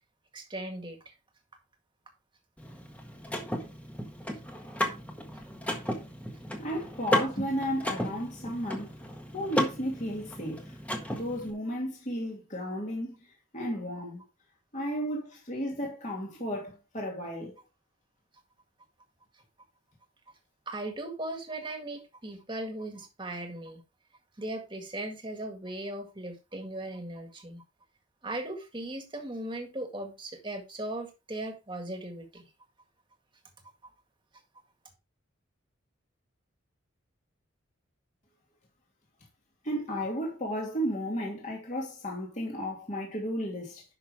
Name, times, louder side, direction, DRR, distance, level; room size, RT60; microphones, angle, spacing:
voice 1, 0.3-1.1 20.7-23.8 24.4-27.6 28.2-32.5, right 1 dB, 25° right, 1.9 m, -38 dB
Car / Mechanisms, 2.6-11.5, equal, 5° left, 1.5 m, -34 dB
voice 2, 6.6-8.9 9.3-10.7 11.1-13.2 13.5-14.2 14.7-17.5 39.6-43.8, equal, 35° left, 2.6 m, -33 dB
11.0 x 6.1 x 3.5 m
head